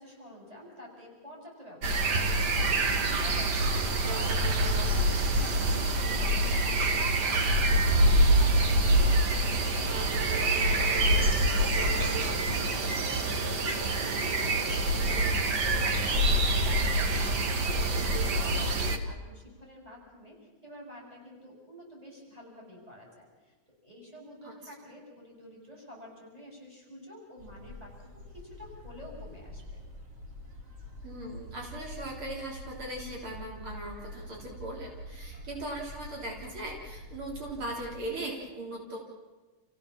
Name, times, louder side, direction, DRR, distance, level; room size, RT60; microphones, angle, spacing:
voice 1, 0.0-20.4 20.6-23.5 23.8-29.8, left 1 dB, 15° right, -3 dB, 7.5 m, -48 dB
sound 1, 1.8-19.0, right 1 dB, 55° right, 1.9 m, -26 dB
sound 2, 27.4-38.1, equal, 35° right, 4.6 m, -46 dB
voice 2, 31.0-39.0, right 1 dB, 80° right, -2 dB, 4.4 m, -39 dB
28.5 x 16.0 x 7.3 m, 1.2 s
omnidirectional pair, 2.3 m